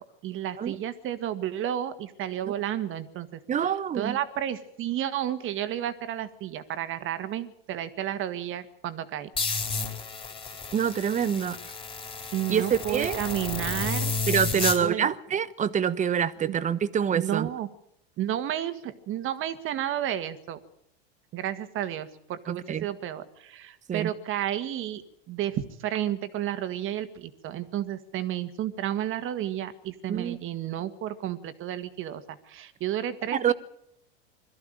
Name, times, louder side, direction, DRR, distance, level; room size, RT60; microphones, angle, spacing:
voice 1, 0.0-9.3 12.3-14.2 14.5-15.1 16.4-16.6 17.1-17.7 18.2-20.6 21.3-33.5, right 11 dB, 40° right, 1.9 m, -32 dB
voice 2, 3.5-4.2 10.7-11.6 12.5-13.2 14.3-17.5 22.5-22.9 23.9-24.1 30.1-30.4 33.3-33.5, right 8 dB, 25° right, 1.0 m, -26 dB
sound 1, 9.4-14.8, left 4 dB, 15° left, 4.4 m, -31 dB
22.0 x 14.0 x 9.0 m
supercardioid pair, 115°, 31 cm